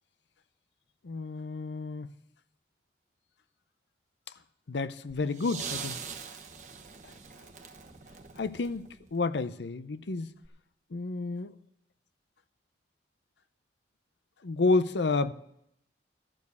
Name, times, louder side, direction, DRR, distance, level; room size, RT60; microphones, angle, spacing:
voice 1, 1.0-2.1 4.7-6.0 8.4-10.3 10.9-11.5 14.4-15.3, left 3 dB, 80° left, 0.6 m, -30 dB
sound 1, 5.3-9.3 10.4-10.5, right 6 dB, 45° right, 1.1 m, -42 dB
12.0 x 7.0 x 8.3 m
head